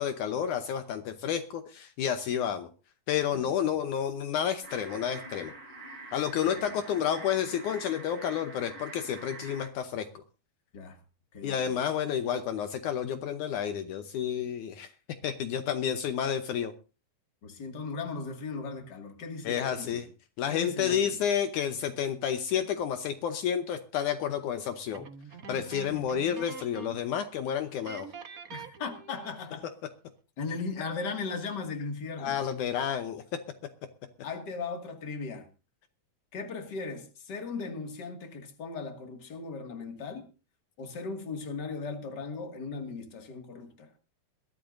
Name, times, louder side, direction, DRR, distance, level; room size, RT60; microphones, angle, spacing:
voice 1, 0.0-2.7 3.1-5.5 6.1-10.2 11.4-14.9 15.2-16.7 19.5-20.1 20.4-25.1 25.5-28.1 32.2-33.2, left 9 dB, 75° left, 2.3 m, -30 dB
voice 2, 3.3-3.7 6.4-6.6 10.7-11.0 11.3-11.7 17.4-20.0 20.5-21.2 25.8-26.0 28.5-29.6 30.4-32.4 34.2-35.5 36.3-40.3 40.8-43.9, left 4 dB, 35° left, 2.4 m, -37 dB
sound 1, 4.6-9.7, right 2 dB, 35° right, 6.7 m, -45 dB
sound 2, 24.9-27.1 27.4-27.5 27.8-29.5, right 6 dB, 80° right, 0.7 m, -45 dB
22.0 x 14.0 x 2.7 m
omnidirectional pair, 3.7 m